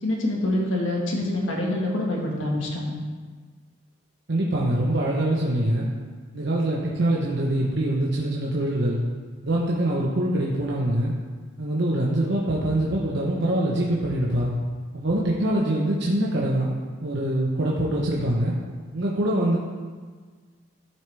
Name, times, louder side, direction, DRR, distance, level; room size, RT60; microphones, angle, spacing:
voice 1, 0.0-2.9, left 1 dB, 65° left, -1 dB, 1.8 m, -26 dB
voice 2, 4.3-5.9 6.3-9.0 9.4-11.1 11.6-14.5 14.9-16.7 17.0-18.6 18.9-19.6, right 1 dB, 60° right, -4 dB, 1.1 m, -24 dB
12.0 x 7.4 x 3.5 m, 1.5 s
head